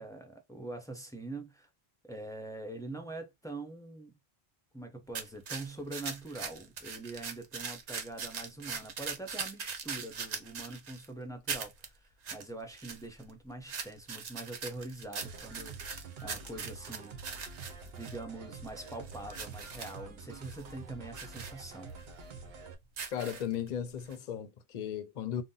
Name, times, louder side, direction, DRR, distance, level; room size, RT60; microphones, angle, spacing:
voice 1, 0.0-1.7 2.0-4.1 4.7-17.2 17.9-21.9, right 2 dB, 5° left, 0.4 m, -44 dB
sound 1, 5.1-11.1 11.5-11.9 12.2-12.4 12.7-13.3 13.7-18.2 18.6-20.0 20.4-20.6 21.1-21.5 22.0-22.1 22.8-23.7 24.1-24.2, right 5 dB, 50° right, 0.6 m, -41 dB
sound 2, 15.2-22.8, right 4 dB, 75° right, 0.9 m, -47 dB
voice 2, 23.1-25.4, left 9 dB, 50° left, 0.6 m, -36 dB
2.6 x 2.1 x 3.7 m
omnidirectional pair, 1.1 m